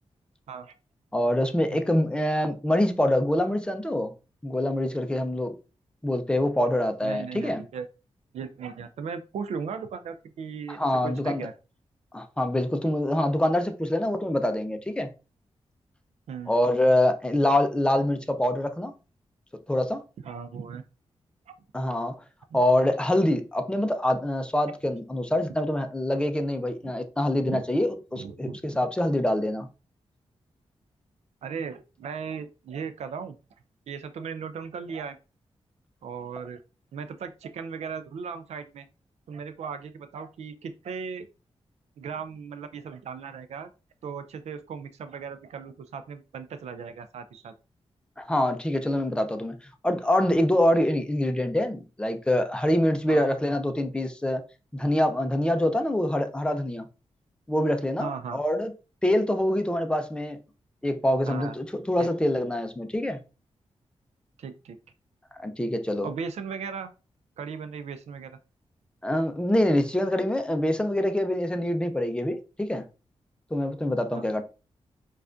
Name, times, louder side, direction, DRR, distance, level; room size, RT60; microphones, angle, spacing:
voice 1, 1.1-4.1 4.4-5.5 6.0-7.6 10.7-11.5 12.1-15.1 16.5-18.9 19.7-20.0 21.7-22.2 22.5-29.7 48.2-49.6 49.8-54.4 54.7-56.9 57.5-58.7 59.0-60.4 60.8-63.2 65.3-66.1 69.0-72.8 73.5-74.4, left 1 dB, 10° left, 0.5 m, -25 dB
voice 2, 7.0-7.9 8.3-11.5 16.3-16.5 20.2-20.8 22.5-22.6 26.8-26.9 27.5-27.6 28.1-28.8 31.4-33.3 33.9-35.2 36.0-36.6 36.9-38.9 39.3-41.3 42.0-43.7 44.0-47.5 53.1-53.2 58.0-58.4 61.3-61.5 62.0-62.1 64.4-64.8 66.0-66.9 67.4-68.4 74.1-74.3, right 6 dB, 80° right, 0.4 m, -37 dB
4.7 x 2.4 x 2.5 m
wide cardioid pair, 90°, 11 cm